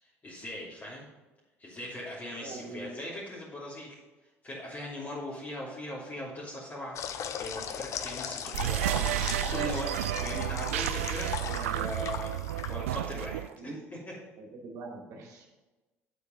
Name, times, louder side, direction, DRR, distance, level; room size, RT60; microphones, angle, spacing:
voice 1, 0.0-1.1 1.6-4.0 4.4-7.0 7.4-12.3 12.7-13.4, left 1 dB, 30° left, -7 dB, 3.0 m, -39 dB
voice 2, 2.4-2.9 13.5-13.7 14.4-15.5, right 3 dB, 55° right, 1 dB, 2.6 m, -43 dB
sound 1, 6.9-13.2, left 8 dB, 45° left, 0.8 m, -38 dB
sound 2, 8.5-13.5, right 14 dB, 75° right, 0.4 m, -31 dB
8.8 x 8.1 x 5.2 m, 1.1 s
figure-of-eight pair, 60°, 7 cm